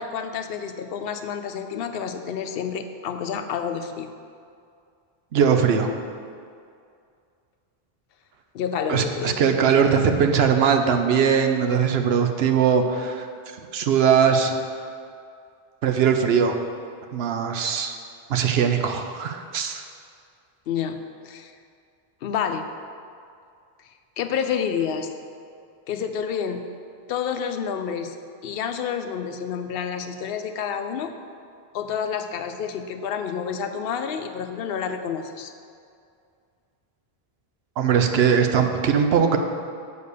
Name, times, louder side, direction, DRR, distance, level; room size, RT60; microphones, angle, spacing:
voice 1, 0.0-4.1 8.5-9.4 20.7-21.5 22.2-22.6 24.2-25.1 25.9-26.6 27.1-28.2 28.4-31.1 31.7-35.5, left 7 dB, 70° left, 7 dB, 0.8 m, -29 dB
voice 2, 5.3-5.9 8.9-13.3 13.7-14.5 15.8-16.5 17.1-17.9 18.3-19.8 37.8-39.4, right 7 dB, 80° right, 6 dB, 0.9 m, -20 dB
6.9 x 4.7 x 6.6 m, 2.3 s
omnidirectional pair, 1.0 m